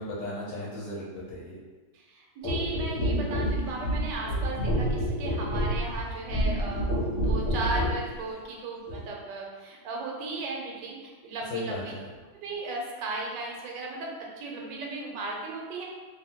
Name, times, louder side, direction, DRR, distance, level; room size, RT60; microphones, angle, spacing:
voice 1, 0.0-1.6 11.5-12.1, left 1 dB, 90° left, -5 dB, 1.4 m, -35 dB
voice 2, 2.1-11.9 12.4-15.8, right 3 dB, 80° right, -1 dB, 1.2 m, -36 dB
sound 1, 2.4-8.0 8.9-9.0, equal, 60° left, 0.8 m, -28 dB
2.7 x 2.6 x 2.8 m, 1.3 s
omnidirectional pair, 1.9 m